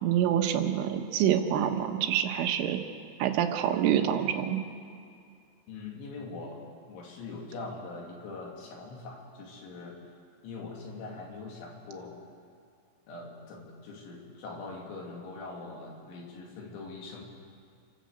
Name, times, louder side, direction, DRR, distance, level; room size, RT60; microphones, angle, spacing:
voice 1, 0.0-2.8 3.2-4.6, right 10 dB, 85° right, 5 dB, 3.6 m, -26 dB
voice 2, 5.7-6.6 6.9-10.0 10.4-12.2 13.1-17.3, left 3 dB, 75° left, -1 dB, 4.9 m, -42 dB
28.0 x 12.0 x 7.9 m, 2.3 s
omnidirectional pair, 5.6 m